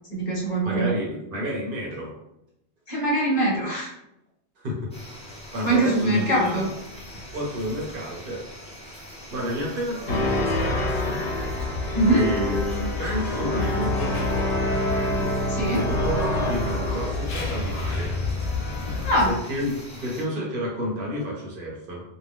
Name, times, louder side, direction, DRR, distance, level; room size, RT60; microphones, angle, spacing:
voice 1, 0.1-0.9 2.9-3.9 5.6-6.6 11.9-12.2 15.5-15.8 19.0-19.3, right 2 dB, 50° left, -5 dB, 1.0 m, -22 dB
voice 2, 0.6-2.1 4.6-4.9 5.5-6.7 7.3-8.4 8.8-9.0 9.3-11.2 12.1-18.1 18.6-22.0, equal, 55° right, -3 dB, 0.9 m, -30 dB
sound 1, 4.9-20.2, left 1 dB, 5° left, 0.6 m, -42 dB
sound 2, 10.1-19.3, left 2 dB, 85° left, 0.9 m, -26 dB
2.7 x 2.1 x 3.4 m, 0.84 s
omnidirectional pair, 1.1 m